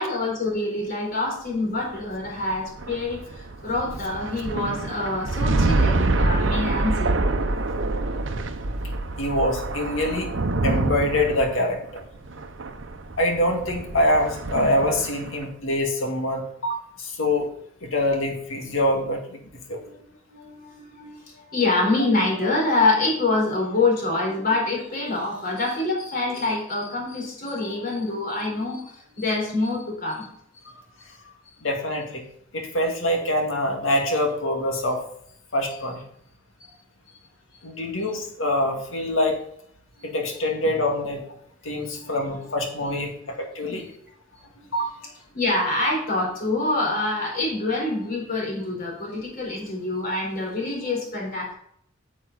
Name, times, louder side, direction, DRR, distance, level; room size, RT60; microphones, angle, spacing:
voice 1, 0.0-7.2 19.8-30.3 36.6-36.7 40.0-40.1 41.9-42.2 43.2-43.3 43.7-43.8 44.6-44.7 45.3-51.5, left 2 dB, 45° left, -2 dB, 4.3 m, -26 dB
sound 1, 1.8-15.4, right 2 dB, 70° right, 0.8 m, -26 dB
voice 2, 9.2-10.3 10.6-12.0 13.2-17.5 17.8-19.4 19.7-19.8 31.6-32.2 32.5-35.0 35.5-36.0 37.6-39.4 40.0-41.2 41.6-43.9 44.7-44.9, left 1 dB, 85° left, 2 dB, 2.1 m, -25 dB
9.4 x 7.3 x 4.1 m, 0.68 s
head